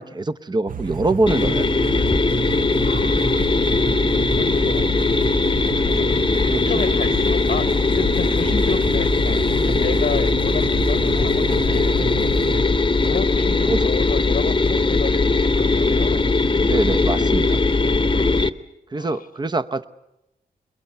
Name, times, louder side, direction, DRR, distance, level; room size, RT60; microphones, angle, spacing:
voice 1, 0.0-1.8 6.5-6.9 13.7-13.9 16.6-17.6 18.9-19.8, right 2 dB, 25° right, 13 dB, 0.8 m, -24 dB
sound 1, 0.7-12.6, right 6 dB, 60° right, 0.8 m, -31 dB
sound 2, 1.3-18.5, left 3 dB, 30° left, 0.9 m, -19 dB
voice 2, 2.8-3.6 4.0-5.3 5.9-12.3 13.1-16.3 18.0-18.5 18.9-19.3, left 6 dB, 65° left, 11 dB, 1.0 m, -32 dB
sound 3, 11.4-11.7 13.0-13.6 14.7-14.9 15.4-16.2, right 3 dB, 80° right, 3.3 m, -45 dB
22.0 x 21.5 x 8.2 m, 0.90 s
cardioid pair, 80°, 16 cm